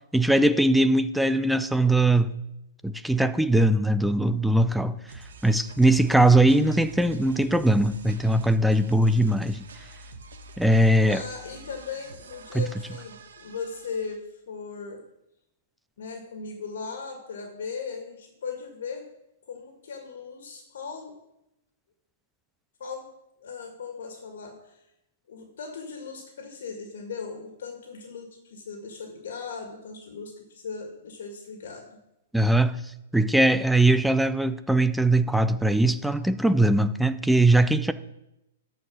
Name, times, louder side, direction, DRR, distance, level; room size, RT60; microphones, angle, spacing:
voice 1, 0.1-2.4 2.8-5.0 5.4-9.6 10.6-11.2 12.5-12.7 32.3-32.8 33.1-37.9, right 1 dB, ahead, 0.4 m, -21 dB
sound 1, 5.1-14.2, right 2 dB, 80° right, 1.2 m, -46 dB
voice 2, 11.1-15.0 16.0-19.1 19.5-21.1 22.8-23.1 23.4-24.8 25.3-31.9, left 5 dB, 70° left, 1.7 m, -38 dB
13.0 x 4.6 x 6.3 m
hypercardioid pair, 165°, 0 cm